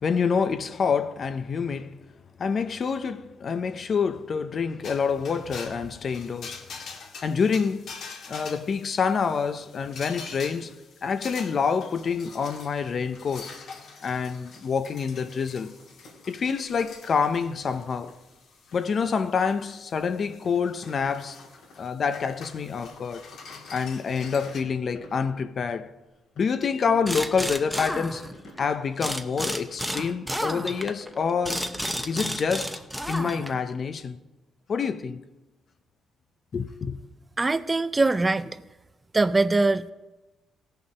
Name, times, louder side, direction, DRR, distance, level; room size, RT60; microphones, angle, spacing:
voice 1, 0.0-2.0 2.4-6.6 7.2-7.9 8.3-10.7 11.0-13.5 14.0-15.7 16.3-18.2 18.7-21.4 21.8-23.3 23.7-25.9 26.4-28.3 28.6-31.6 32.1-32.8 33.1-34.2 34.7-35.2 36.5-37.0, left 6 dB, 50° left, 0.7 m, -27 dB
sound 1, 4.8-24.6, left 4 dB, 70° left, 1.9 m, -45 dB
sound 2, 14.0-32.2, left 1 dB, 90° left, 3.5 m, -55 dB
sound 3, 27.0-28.6 29.0-33.7, equal, ahead, 0.9 m, -31 dB
voice 2, 37.4-38.5 39.1-39.9, right 3 dB, 20° right, 0.5 m, -22 dB
17.0 x 6.8 x 5.6 m
cardioid pair, 90°, 0 cm